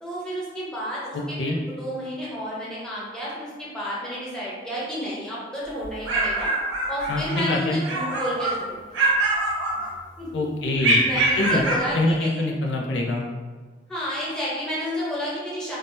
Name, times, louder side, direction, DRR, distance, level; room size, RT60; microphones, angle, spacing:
voice 1, 0.0-6.5 6.9-9.0 10.2-10.3 10.6-10.7 11.0-12.5 13.9-15.8, equal, 5° left, -8 dB, 0.8 m, -31 dB
voice 2, 1.1-1.6 7.1-7.8 10.3-11.0 11.4-11.6 11.9-13.2, left 2 dB, 70° left, 0 dB, 0.3 m, -25 dB
sound 1, 5.8-7.5 7.8-8.6 8.9-10.2 10.8-11.9, right 2 dB, 80° right, 0.6 m, -24 dB
3.5 x 2.0 x 2.6 m, 1.4 s
head